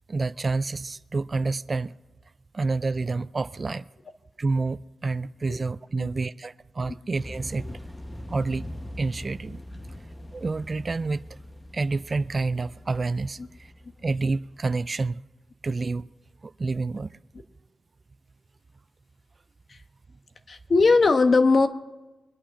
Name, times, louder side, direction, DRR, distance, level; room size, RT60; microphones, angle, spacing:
voice 1, 0.1-1.9 2.5-3.9 4.4-7.7 8.3-8.6 9.0-9.6 9.9-10.0 10.3-11.4 11.7-13.7 14.0-15.2 15.6-16.1 16.4-17.2, right 3 dB, 40° right, 0.4 m, -28 dB
sound 1, 7.2-14.9, left 1 dB, 15° left, 0.9 m, -42 dB
voice 2, 20.5-21.7, left 3 dB, 50° left, 1.1 m, -20 dB
23.5 x 8.8 x 5.7 m
cardioid pair, 65°, 0 cm